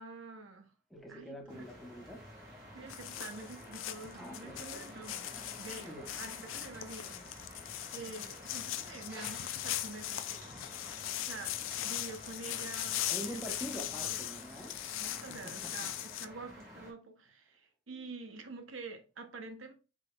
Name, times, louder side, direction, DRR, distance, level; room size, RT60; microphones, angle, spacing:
voice 1, 0.0-0.7 1.1-1.7 2.7-5.3 5.6-7.2 7.9-10.5 11.2-11.6 11.8-13.4 14.1-14.3 15.0-19.7, right 3 dB, 90° right, 0.9 m, -47 dB
voice 2, 0.9-2.3 4.2-4.9 5.2-6.1 13.1-14.7 15.0-15.9, equal, ahead, 1.1 m, -46 dB
sound 1, 1.5-16.9, equal, 15° right, 2.1 m, -51 dB
sound 2, 2.9-16.3, left 13 dB, 85° left, 0.4 m, -40 dB
4.9 x 4.4 x 2.4 m
head